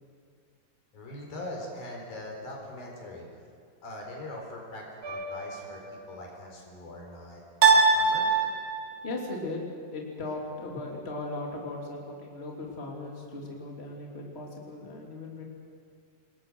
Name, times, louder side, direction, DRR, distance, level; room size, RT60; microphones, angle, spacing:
voice 1, 0.9-3.3 3.8-8.4, left 1 dB, 80° left, 0 dB, 6.1 m, -42 dB
sound 1, 5.0-5.7 7.6-9.1, right 4 dB, 60° right, 3.9 m, -23 dB
voice 2, 9.0-9.6 9.9-15.4, left 2 dB, 20° left, -1 dB, 3.0 m, -37 dB
27.0 x 20.0 x 6.3 m, 2.2 s
omnidirectional pair, 4.1 m